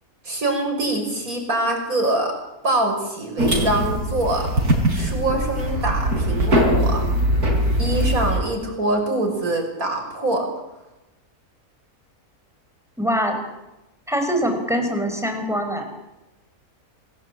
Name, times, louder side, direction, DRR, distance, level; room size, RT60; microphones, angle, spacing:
voice 1, 0.2-2.3 2.6-4.5 4.9-7.0 7.8-10.4, right 2 dB, 70° right, 2 dB, 6.8 m, -24 dB
sound 1, 3.4-8.4, equal, 85° right, 5.4 m, -21 dB
voice 2, 13.0-13.4 14.1-15.9, equal, ahead, 4 dB, 5.4 m, -23 dB
27.5 x 18.5 x 8.6 m, 0.97 s
omnidirectional pair, 1.6 m